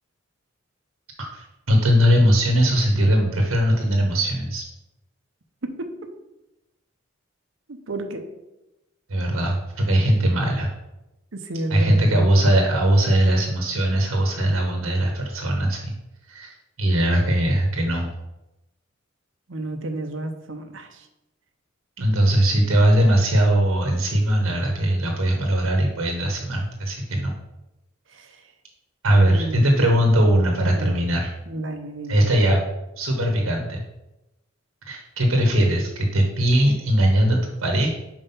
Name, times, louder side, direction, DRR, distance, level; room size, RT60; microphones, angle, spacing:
voice 1, 1.2-4.6 9.1-10.7 11.7-15.9 16.3-18.1 22.0-27.3 29.0-31.3 32.1-32.6 33.0-33.8 34.8-37.9, right 1 dB, 85° right, 2 dB, 1.1 m, -20 dB
voice 2, 7.7-8.2 11.3-12.3 19.5-21.1 22.0-22.2 28.1-28.5 29.2-29.7 30.6-31.0 31.5-32.2, right 1 dB, 65° right, 6 dB, 0.8 m, -31 dB
5.6 x 4.7 x 5.6 m, 0.96 s
head